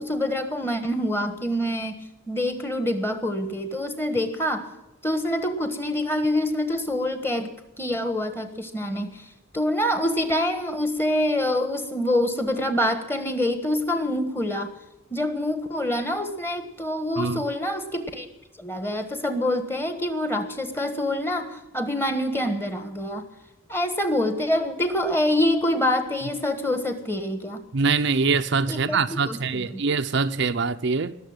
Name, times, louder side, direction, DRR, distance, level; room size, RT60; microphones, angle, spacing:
voice 1, 0.0-2.0 2.3-4.7 5.0-9.3 9.5-14.7 15.1-18.3 18.6-23.3 23.7-27.6 28.7-29.8, left 1 dB, 10° left, 1.4 m, -26 dB
voice 2, 27.7-31.2, right 4 dB, 55° right, 0.6 m, -24 dB
19.5 x 7.1 x 8.7 m
head